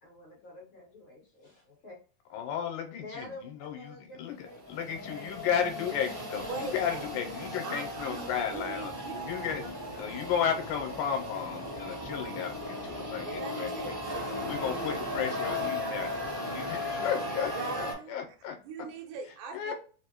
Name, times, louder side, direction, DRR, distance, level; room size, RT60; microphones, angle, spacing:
voice 1, 0.0-2.0 3.0-4.6 5.1-5.6 6.1-6.4 9.1-10.2, left 2 dB, 50° left, 1.7 m, -49 dB
voice 2, 2.3-8.9 9.2-9.6 10.0-14.0 14.5-16.2 16.5-18.6 19.5-19.7, left 8 dB, 85° left, 2.1 m, -34 dB
sound 1, 4.4-17.9, left 1 dB, 35° right, 0.8 m, -36 dB
voice 3, 6.5-7.1 7.6-9.3 13.2-14.4 17.5-18.2 18.6-19.7, right 4 dB, 85° right, 2.1 m, -41 dB
4.8 x 2.0 x 2.9 m
omnidirectional pair, 3.6 m